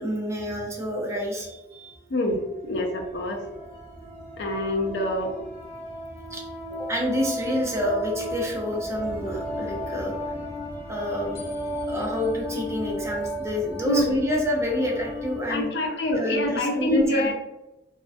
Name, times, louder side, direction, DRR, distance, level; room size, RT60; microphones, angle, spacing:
voice 1, 0.0-2.0 6.3-6.4 6.7-10.1 10.9-15.7 16.1-17.3, equal, 15° right, -2 dB, 0.5 m, -28 dB
sound 1, 1.4-1.5 2.1-15.5, equal, 35° left, 0.7 m, -35 dB
voice 2, 2.7-3.4 4.4-5.4 13.9-14.1 15.5-17.3, left 1 dB, 65° left, 3 dB, 0.4 m, -25 dB
2.4 x 2.2 x 2.5 m, 0.99 s
head